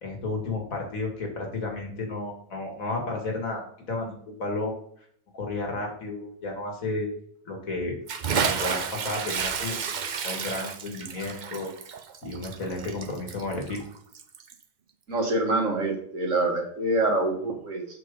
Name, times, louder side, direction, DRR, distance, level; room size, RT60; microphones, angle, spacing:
voice 1, 0.0-4.8 5.3-7.1 7.4-8.0 8.3-9.8 10.2-11.7 12.2-13.8, left 2 dB, 85° left, 1 dB, 2.6 m, -32 dB
Bathtub (filling or washing) / Splash splatter, 8.1-14.6, right 6 dB, 45° right, 0.6 m, -31 dB
voice 2, 15.1-17.9, right 2 dB, 70° right, 0 dB, 2.1 m, -25 dB
7.6 x 6.5 x 3.8 m, 0.63 s
omnidirectional pair, 1.4 m